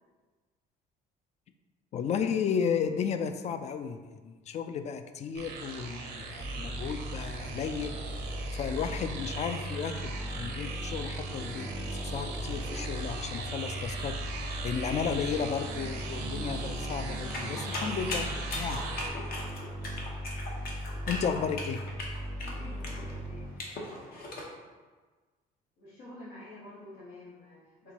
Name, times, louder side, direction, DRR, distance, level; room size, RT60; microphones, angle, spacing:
voice 1, 1.9-18.3 18.6-18.8 21.1-21.8, left 7 dB, 40° left, 9 dB, 0.4 m, -34 dB
sound 1, 5.4-19.1, right 4 dB, 90° right, 0.7 m, -39 dB
sound 2, 6.4-23.5, equal, 20° right, 0.5 m, -38 dB
sound 3, 17.3-24.5, left 2 dB, 60° left, 0.9 m, -38 dB
voice 2, 22.4-23.5 25.8-27.9, left 1 dB, 85° left, -11 dB, 1.4 m, -48 dB
4.4 x 3.7 x 2.8 m, 1.3 s
cardioid pair, 110°, 17 cm